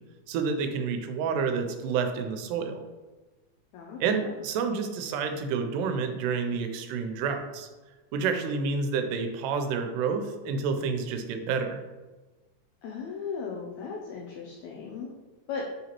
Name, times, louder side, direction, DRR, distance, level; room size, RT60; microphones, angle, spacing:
voice 1, 0.3-2.8 4.0-7.7 8.1-11.8, right 5 dB, 85° right, 6 dB, 2.1 m, -29 dB
voice 2, 3.7-4.3 12.8-15.1 15.5-15.7, left 5 dB, 80° left, -1 dB, 1.6 m, -37 dB
4.7 x 3.9 x 2.9 m, 1.2 s
omnidirectional pair, 3.7 m